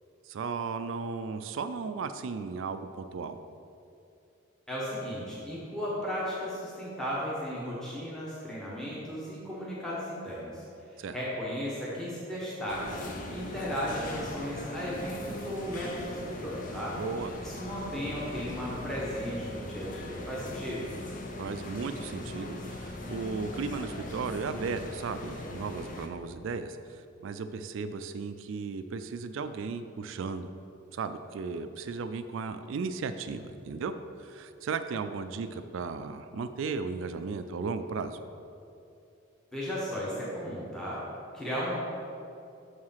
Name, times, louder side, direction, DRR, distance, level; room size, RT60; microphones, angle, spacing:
voice 1, 0.3-3.4 11.0-11.2 17.0-17.3 21.4-30.5 30.9-33.9 34.2-38.2, right 4 dB, 70° right, 10 dB, 0.3 m, -35 dB
voice 2, 4.7-10.6 11.1-13.0 13.3-16.9 17.4-20.9 39.5-41.0 41.3-41.8, equal, 5° left, -6 dB, 1.1 m, -35 dB
sound 1, 12.7-26.1, left 2 dB, 40° left, 0.6 m, -40 dB
6.4 x 4.8 x 5.6 m, 2.7 s
head